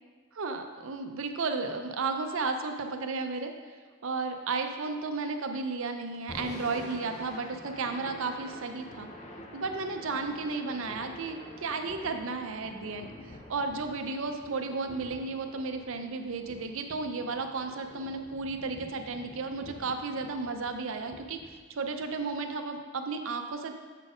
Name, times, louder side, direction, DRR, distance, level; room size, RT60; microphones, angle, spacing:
voice 1, 0.3-3.5 4.0-9.1 9.5-21.4 21.7-23.7, right 4 dB, 65° right, 6 dB, 0.5 m, -33 dB
Thunder / Rain, 6.1-22.4, left 1 dB, 30° left, 0.6 m, -48 dB
7.3 x 4.1 x 4.9 m, 1.5 s
head